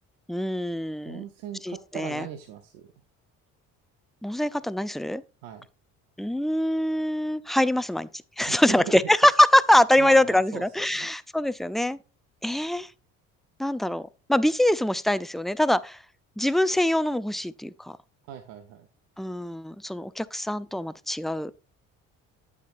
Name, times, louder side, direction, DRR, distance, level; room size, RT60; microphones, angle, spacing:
voice 1, 0.3-1.2 1.6-2.2 4.2-5.2 6.2-8.1 8.4-12.0 12.4-12.9 13.6-16.0 16.4-18.0 19.2-21.5, left 1 dB, ahead, 0.4 m, -23 dB
voice 2, 1.1-2.9 5.4-5.7 8.4-9.1 10.0-11.1 18.3-18.9, right 9 dB, 90° right, 0.9 m, -39 dB
8.5 x 8.2 x 2.5 m
supercardioid pair, 75°, 34 cm